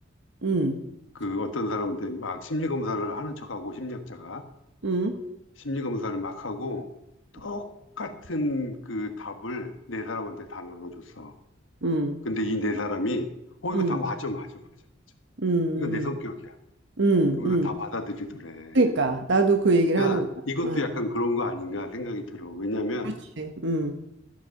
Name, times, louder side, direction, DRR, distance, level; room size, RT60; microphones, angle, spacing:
voice 1, 0.4-0.7 4.8-5.1 11.8-12.1 13.7-14.0 15.4-16.1 17.0-17.7 18.7-20.2 20.6-20.8 23.4-23.9, right 2 dB, 65° right, 5 dB, 1.2 m, -23 dB
voice 2, 1.1-4.4 5.6-6.9 7.3-7.7 8.0-11.3 12.2-13.3 13.6-14.6 15.8-16.5 17.4-18.8 20.0-23.2, left 2 dB, 75° left, 6 dB, 1.3 m, -31 dB
14.5 x 8.4 x 6.5 m, 0.83 s
head